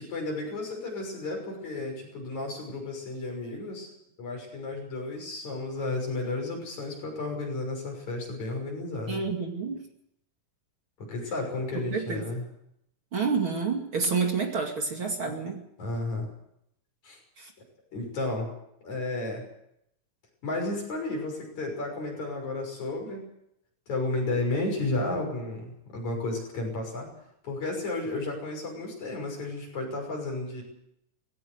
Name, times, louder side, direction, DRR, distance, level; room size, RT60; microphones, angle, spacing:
voice 1, 0.0-3.9 4.2-9.2 11.0-12.5 15.8-16.3 17.0-17.2 17.9-18.5 18.8-19.4 20.4-23.3 23.9-27.1 27.4-30.6, left 2 dB, 65° left, 1 dB, 7.4 m, -32 dB
voice 2, 9.1-9.8 11.9-12.2 13.1-15.6 17.4-17.5, right 5 dB, 45° right, 2 dB, 3.0 m, -28 dB
19.5 x 17.0 x 8.0 m, 0.78 s
omnidirectional pair, 3.6 m